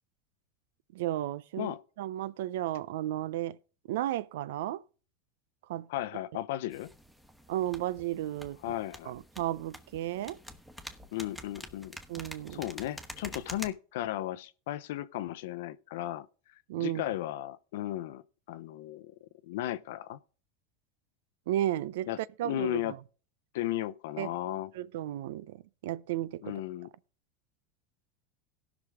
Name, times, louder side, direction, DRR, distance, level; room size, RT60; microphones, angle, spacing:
voice 1, 0.9-3.6 3.9-4.8 5.7-5.9 7.5-8.6 9.1-10.4 12.1-12.6 16.7-17.0 21.5-23.0 24.2-26.6, right 13 dB, 80° right, 0.5 m, -34 dB
voice 2, 5.9-6.9 8.6-9.1 11.1-11.9 12.5-16.3 16.8-18.2 18.5-19.1 19.4-20.2 22.1-22.9 23.5-24.7 26.4-26.9, left 13 dB, 75° left, 0.7 m, -35 dB
sound 1, 6.7-13.7, equal, 5° right, 1.3 m, -47 dB
18.0 x 6.1 x 3.5 m
supercardioid pair, 115°, 0 cm